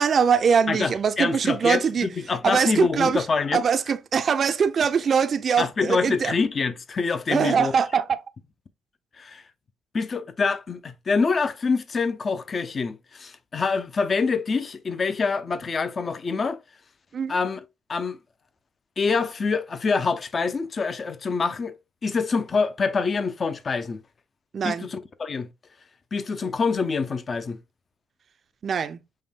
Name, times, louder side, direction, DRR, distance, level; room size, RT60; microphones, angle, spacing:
voice 1, 0.0-2.1 2.4-3.3 3.5-6.3 7.3-8.2 17.1-17.3 24.5-24.9 28.6-29.0, right 6 dB, 50° right, 0.4 m, -22 dB
voice 2, 0.7-3.6 5.6-7.7 9.2-9.4 9.9-16.6 17.3-17.6 17.9-18.2 19.0-21.7 22.0-24.0 24.6-25.5 26.1-27.6, left 4 dB, 40° left, 0.5 m, -26 dB
5.4 x 2.2 x 3.5 m
cardioid pair, 90°, 0 cm